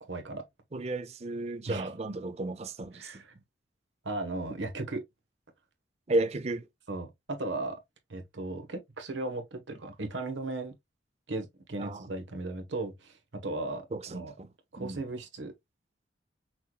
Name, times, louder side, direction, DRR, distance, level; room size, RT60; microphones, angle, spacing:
voice 1, 0.0-0.4 1.7-1.9 2.9-3.3 4.0-5.0 6.9-7.8 8.1-10.7 11.3-14.3 14.7-15.5, right 2 dB, 80° right, 1.2 m, -36 dB
voice 2, 0.7-3.2 6.1-6.7 11.8-12.0 13.9-14.5 14.8-15.0, right 2 dB, 35° right, 0.5 m, -33 dB
5.8 x 3.1 x 2.3 m
head